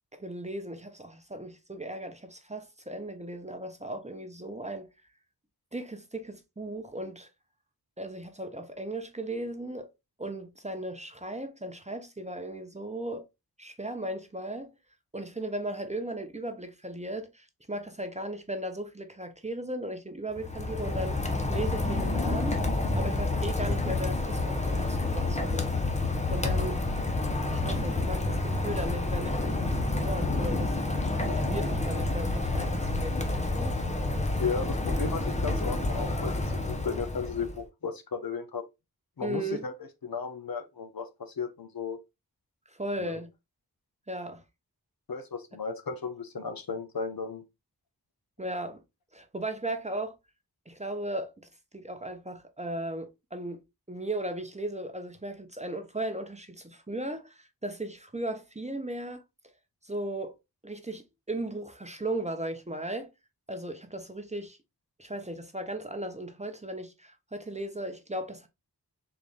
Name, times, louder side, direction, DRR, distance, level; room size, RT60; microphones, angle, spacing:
voice 1, 0.1-4.9 5.7-7.3 8.0-9.9 10.2-13.3 13.6-14.7 15.1-22.6 22.9-25.7 26.3-26.8 27.5-30.8 31.2-33.8 39.2-39.7 42.7-43.3 44.1-44.4 48.4-48.8 49.1-50.2 50.7-53.6 53.9-59.2 59.8-60.3 60.6-63.1 63.5-64.6 65.0-68.5, right 1 dB, 20° right, 0.7 m, -36 dB
Rain, 20.3-37.6, left 2 dB, 20° left, 0.7 m, -29 dB
voice 2, 34.4-38.6 39.2-39.7 40.0-42.0 43.0-43.2 45.1-47.4, left 5 dB, 65° left, 0.7 m, -35 dB
3.7 x 2.5 x 3.4 m
wide cardioid pair, 50°, 39 cm